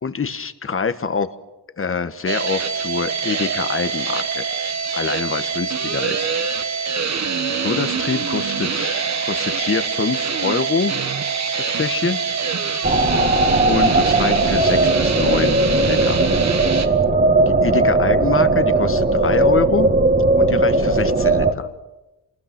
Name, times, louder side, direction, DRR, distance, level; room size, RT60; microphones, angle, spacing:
voice 1, 0.0-1.3 1.8-4.5 4.9-6.3 7.6-10.9 11.6-12.2 13.1-13.3 13.6-15.6 15.9-16.2 17.5-19.9 20.4-21.7, left 5 dB, 30° left, 12 dB, 1.4 m, -25 dB
sound 1, 2.3-16.9, right 6 dB, 40° right, 1.5 m, -24 dB
sound 2, 12.8-21.5, right 2 dB, 25° right, 2.1 m, -17 dB
27.0 x 20.0 x 6.1 m, 1.0 s
cardioid pair, 85°, 40 cm